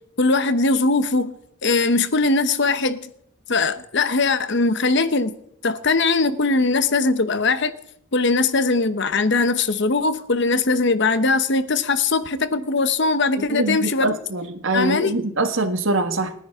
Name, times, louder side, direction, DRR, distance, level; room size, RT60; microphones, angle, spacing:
voice 1, 0.2-1.3 1.6-3.1 3.5-5.3 5.6-7.7 8.1-14.1 14.7-15.2, left 3 dB, 55° left, 0.9 m, -20 dB
voice 2, 13.5-16.3, right 2 dB, 65° right, 1.6 m, -23 dB
29.5 x 10.0 x 3.7 m
head